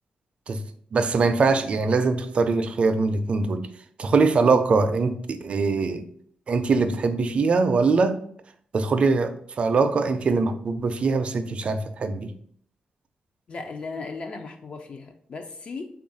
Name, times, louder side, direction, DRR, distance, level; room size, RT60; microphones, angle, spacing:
voice 1, 0.9-3.7 4.0-6.0 6.5-8.2 8.7-12.3, right 4 dB, 45° right, 9 dB, 0.3 m, -22 dB
voice 2, 13.5-15.9, left 4 dB, 45° left, 5 dB, 0.3 m, -36 dB
3.4 x 2.4 x 3.8 m, 0.62 s
wide cardioid pair, 130°, 3 cm